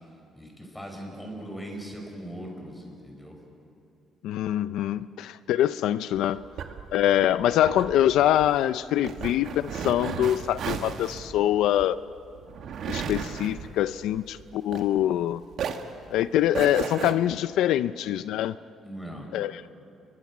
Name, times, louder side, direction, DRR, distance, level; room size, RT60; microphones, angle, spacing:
voice 1, 0.3-3.4 18.8-19.3, right 1 dB, 5° left, 1 dB, 5.0 m, -39 dB
voice 2, 4.2-6.4 6.9-12.0 12.9-15.4 16.1-18.5 19.3-19.7, left 12 dB, 85° left, 14 dB, 0.4 m, -24 dB
sound 1, 6.1-15.2 15.5-17.1, right 7 dB, 60° right, 1.5 m, -35 dB
30.0 x 22.5 x 6.1 m, 2.7 s
cardioid pair, 150°, 0 cm